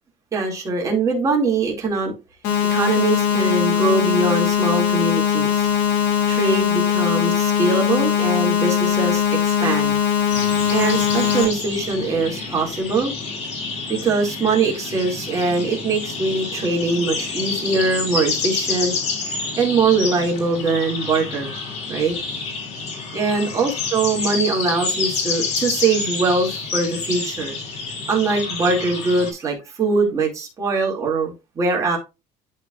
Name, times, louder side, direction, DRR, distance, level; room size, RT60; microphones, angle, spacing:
voice 1, 0.3-2.1 2.7-5.7 6.3-10.0 10.7-13.1 13.9-18.9 19.2-22.1 23.1-27.6 28.1-32.0, right 3 dB, 20° right, 2.6 m, -22 dB
sound 1, 2.4-11.4, left 9 dB, 85° left, 2.8 m, -20 dB
sound 2, 10.3-29.3, left 4 dB, 50° left, 2.9 m, -28 dB
11.5 x 4.0 x 2.5 m
cardioid pair, 160°, 16 cm